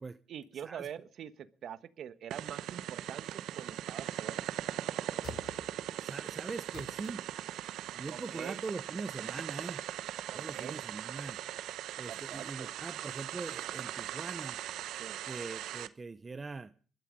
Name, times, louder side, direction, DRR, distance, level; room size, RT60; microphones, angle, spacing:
voice 1, 0.3-4.5 8.1-8.6 10.3-10.8 12.1-12.7 15.0-15.2, right 9 dB, 70° right, 12 dB, 1.3 m, -45 dB
sound 1, 2.3-15.9, right 12 dB, 85° right, 0.9 m, -39 dB
sound 2, 3.5-4.2 5.2-5.9 6.7-7.4 9.2-9.3, left 4 dB, 50° left, 6.2 m, -50 dB
voice 2, 6.0-7.2 7.9-9.8 10.3-11.4 12.0-14.6 15.3-16.7, right 3 dB, 30° right, 11 dB, 0.7 m, -42 dB
21.0 x 13.0 x 5.4 m, 0.42 s
cardioid pair, 90°, 0 cm